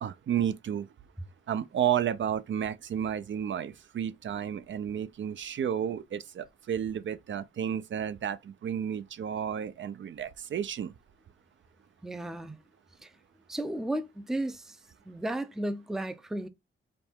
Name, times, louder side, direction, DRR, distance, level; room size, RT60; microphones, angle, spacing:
voice 1, 0.0-0.9 1.5-10.9, right 9 dB, 65° right, 0.4 m, -32 dB
voice 2, 12.0-12.6 13.0-13.1 13.5-14.8 15.1-16.5, right 1 dB, ahead, 0.4 m, -34 dB
5.3 x 2.2 x 4.4 m
wide cardioid pair, 165°, 21 cm